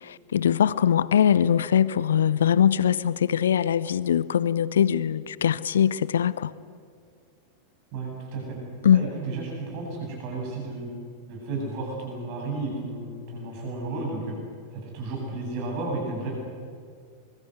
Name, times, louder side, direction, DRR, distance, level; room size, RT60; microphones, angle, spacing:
voice 1, 0.0-6.5 8.8-9.1, left 9 dB, 65° left, 0.7 m, -22 dB
voice 2, 7.9-8.6 8.9-10.9 11.3-14.3 14.8-16.3, right 3 dB, 45° right, 8.0 m, -33 dB
25.0 x 23.0 x 8.1 m
figure-of-eight pair, 90°, 0 cm